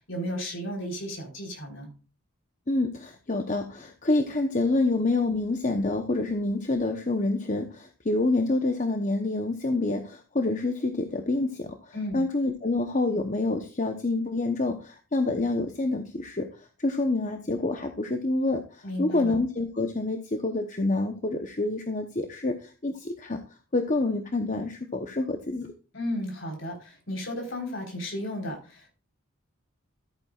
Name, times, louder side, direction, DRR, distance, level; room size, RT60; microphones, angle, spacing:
voice 1, 0.1-1.9 11.9-12.2 18.8-19.3 25.9-28.9, left 1 dB, 60° left, 1 dB, 4.1 m, -34 dB
voice 2, 2.7-23.4 23.7-25.7, left 2 dB, 35° left, 5 dB, 0.9 m, -27 dB
13.5 x 9.0 x 2.4 m, 0.34 s
head